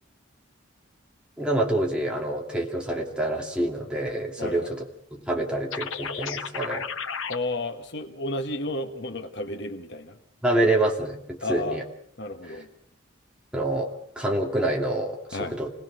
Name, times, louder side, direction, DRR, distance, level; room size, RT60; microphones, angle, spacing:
voice 1, 1.4-4.8 5.1-6.9 10.4-11.8 12.4-12.6 13.5-15.7, right 1 dB, 5° right, 0 dB, 2.6 m, -27 dB
voice 2, 4.4-4.7 7.3-10.2 11.4-11.8 12.2-12.7 15.3-15.5, left 2 dB, 60° left, 7 dB, 1.6 m, -32 dB
sound 1, 5.7-7.4, left 6 dB, 85° left, 1.3 m, -33 dB
26.5 x 19.5 x 6.4 m, 0.66 s
head